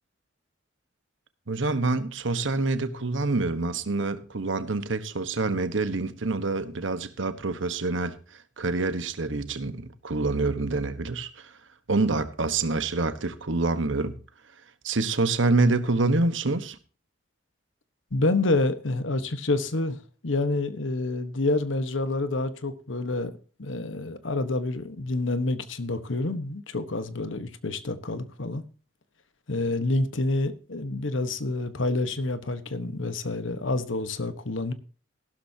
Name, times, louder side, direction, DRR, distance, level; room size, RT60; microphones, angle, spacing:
voice 1, 1.5-8.2 8.6-11.5 11.9-14.2 14.8-16.8, right 3 dB, 80° right, 1.3 m, -26 dB
voice 2, 18.1-20.0 20.2-23.3 23.6-28.6 29.5-34.7, left 2 dB, 90° left, 1.3 m, -28 dB
15.0 x 12.5 x 2.8 m
head